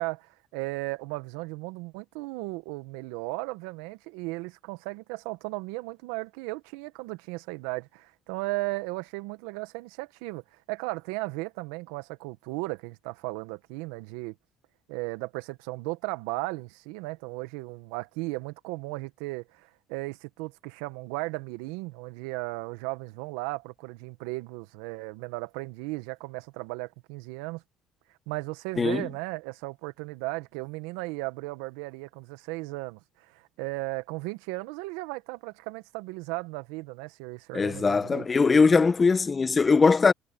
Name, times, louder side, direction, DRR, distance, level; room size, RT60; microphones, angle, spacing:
voice 1, 0.0-14.3 14.9-27.6 28.3-33.0 33.3-38.9, right 23 dB, 80° right, 1.7 m, -36 dB
voice 2, 28.8-29.1 37.5-40.1, left 4 dB, 30° left, 1.5 m, -21 dB
hypercardioid pair, 60°, 0 cm